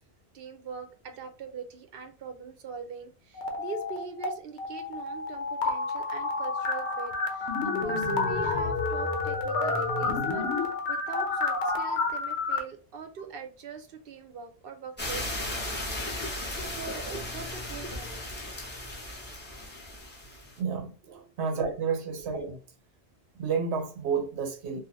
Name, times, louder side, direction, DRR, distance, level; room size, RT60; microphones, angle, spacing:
voice 1, 0.3-15.8 16.3-18.2 21.0-21.3 21.8-21.9, right 6 dB, 60° right, 0.8 m, -42 dB
sound 1, 3.4-4.3 4.6-12.6, left 3 dB, 80° left, 0.9 m, -29 dB
sound 2, 15.0-20.6, left 1 dB, 10° left, 0.7 m, -36 dB
voice 2, 20.6-20.9 21.4-22.6 23.4-24.8, right 5 dB, 85° right, 1.0 m, -30 dB
2.6 x 2.4 x 2.7 m
omnidirectional pair, 1.1 m